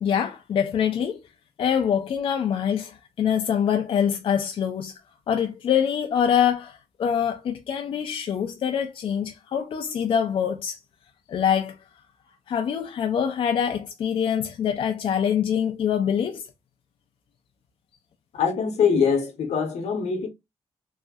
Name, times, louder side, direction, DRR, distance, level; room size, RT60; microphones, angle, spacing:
voice 1, 0.0-1.2 1.6-5.0 5.3-10.8 11.3-11.8 12.5-16.5, left 8 dB, 50° left, 0.4 m, -24 dB
voice 2, 18.3-20.3, left 6 dB, 80° left, 0.9 m, -23 dB
3.2 x 2.6 x 2.3 m
wide cardioid pair, 180°, 11 cm